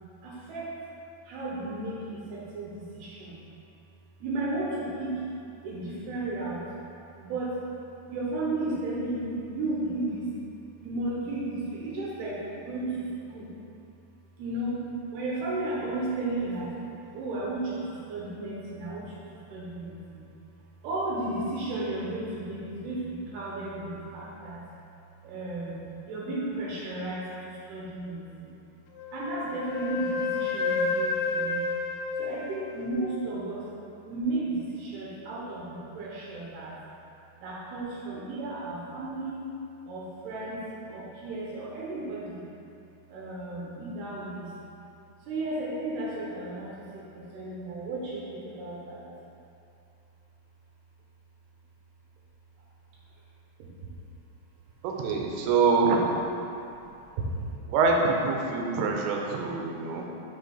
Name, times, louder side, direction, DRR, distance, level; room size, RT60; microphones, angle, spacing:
voice 1, 0.2-0.7 1.3-3.4 4.2-5.2 5.6-6.6 7.2-7.6 8.1-10.3 10.8-13.5 14.4-14.8 15.1-16.8 17.1-19.2 19.5-20.2 20.8-24.6 25.2-28.5 29.1-31.6 32.2-33.7 34.0-36.8 37.4-39.5 39.9-42.4 43.1-44.5 45.3-49.1 53.8-53.9 56.5-56.8 57.2-57.3, right 2 dB, 75° right, -6 dB, 2.7 m, -34 dB
Wind instrument woodwind instrument, 28.9-33.2, left 4 dB, 90° left, 3.0 m, -30 dB
voice 2, 54.8-56.1 57.7-60.1, right 4 dB, 90° right, 0 dB, 3.0 m, -25 dB
6.5 x 5.4 x 3.9 m, 2.7 s
omnidirectional pair, 5.0 m